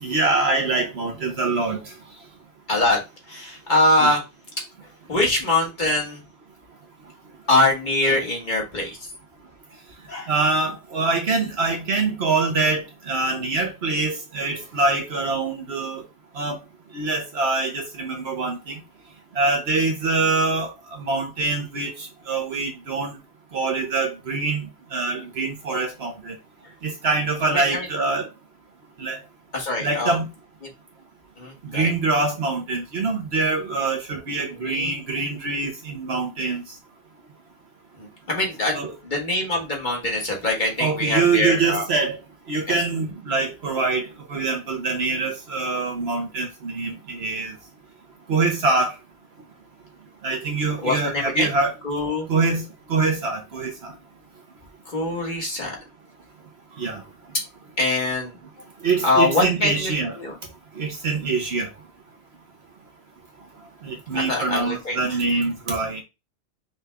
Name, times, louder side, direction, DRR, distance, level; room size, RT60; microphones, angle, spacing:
voice 1, 0.0-1.8 4.0-4.1 10.3-16.0 16.4-16.6 16.9-18.8 19.4-20.7 21.0-23.2 23.5-24.7 24.9-26.3 26.8-28.3 29.0-29.2 29.8-30.3 31.7-36.6 38.7-38.9 40.8-42.2 42.5-44.0 44.3-47.5 48.3-48.9 50.2-51.7 52.3-52.6 52.9-53.9 56.8-57.0 58.8-60.1 60.8-61.7 63.8-66.0, right 3 dB, 65° right, 1.3 m, -24 dB
voice 2, 2.7-3.0 3.3-4.2 5.1-6.2 7.5-9.0 10.1-10.3 27.5-27.9 29.5-30.2 30.6-30.7 31.4-31.9 34.5-34.9 38.0-41.9 42.7-42.8 50.8-51.5 51.8-52.3 54.9-55.8 57.8-58.4 59.0-60.4 64.1-65.2, left 2 dB, 40° left, 1.8 m, -23 dB
5.5 x 2.6 x 3.4 m
omnidirectional pair, 1.2 m